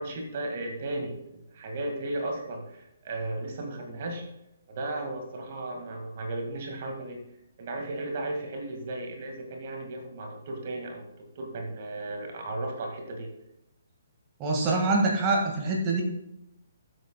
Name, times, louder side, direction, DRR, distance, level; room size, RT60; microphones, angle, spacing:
voice 1, 0.0-4.3 4.7-7.2 7.6-13.3, right 2 dB, 40° right, 2 dB, 1.8 m, -35 dB
voice 2, 14.4-16.0, right 3 dB, 25° right, -1 dB, 1.7 m, -25 dB
19.5 x 8.3 x 2.2 m, 0.87 s
figure-of-eight pair, 130°, 0 cm